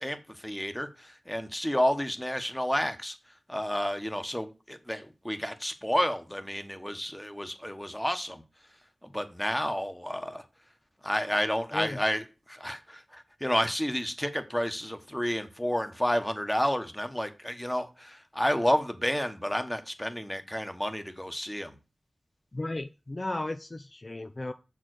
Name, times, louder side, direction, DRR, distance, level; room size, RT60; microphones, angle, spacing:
voice 1, 0.0-3.2 3.5-8.4 9.0-10.4 11.0-21.8, equal, 10° left, 8 dB, 1.2 m, -30 dB
voice 2, 22.5-24.5, left 2 dB, 40° left, 7 dB, 0.5 m, -35 dB
7.2 x 4.6 x 6.3 m, 0.30 s
wide cardioid pair, 55°, 0 cm